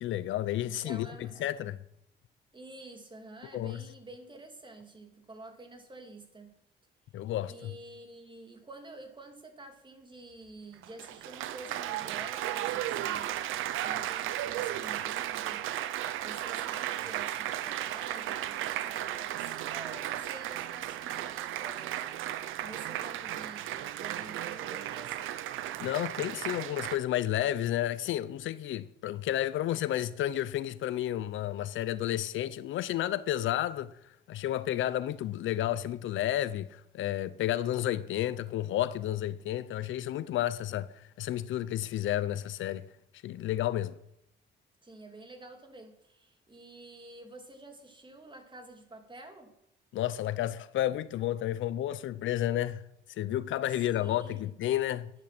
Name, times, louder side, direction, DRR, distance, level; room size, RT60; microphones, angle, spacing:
voice 1, 0.0-1.8 3.5-3.8 7.1-7.7 25.8-33.9 34.3-42.9 43.2-43.9 49.9-52.8 53.2-55.1, left 13 dB, 75° left, 0.7 m, -31 dB
voice 2, 0.6-1.4 2.5-6.5 7.4-13.4 13.8-15.9 16.2-22.0 22.6-25.4 44.8-49.5 53.7-54.5, right 2 dB, 25° right, 2.6 m, -49 dB
Applause, 10.7-27.0, right 12 dB, 90° right, 0.7 m, -35 dB
11.0 x 10.0 x 6.0 m
cardioid pair, 90°, 20 cm